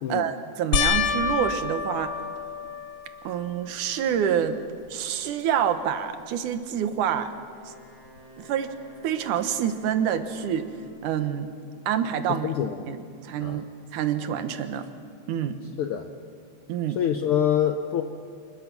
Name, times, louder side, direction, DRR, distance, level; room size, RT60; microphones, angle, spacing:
voice 1, 0.1-2.2 3.2-4.6 4.9-7.3 7.7-7.8 8.4-8.7 9.0-10.7 11.0-11.5 11.9-12.5 12.9-13.7 13.9-14.9 15.3-15.6 16.7-17.0, right 9 dB, 90° right, 9 dB, 2.6 m, -27 dB
sound 1, 0.7-3.3 3.9-4.5 4.8-4.9 8.2-8.3, left 5 dB, 55° left, 1.5 m, -28 dB
Wind instrument woodwind instrument, 7.4-11.2, right 1 dB, 40° left, 3.5 m, -48 dB
voice 2, 12.4-12.9 13.4-13.6 15.8-16.1 16.9-18.0, left 9 dB, 75° left, 7 dB, 1.2 m, -25 dB
27.5 x 21.0 x 6.0 m, 2.3 s
omnidirectional pair, 3.4 m